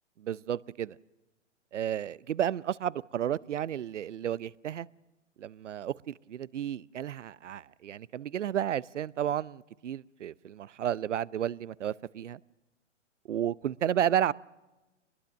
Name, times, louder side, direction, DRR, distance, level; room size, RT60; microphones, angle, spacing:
voice 1, 0.2-1.0 1.7-4.9 5.4-12.4 13.3-14.3, right 10 dB, 75° right, 0.7 m, -32 dB
25.5 x 21.0 x 6.4 m
hypercardioid pair, 125°, 37 cm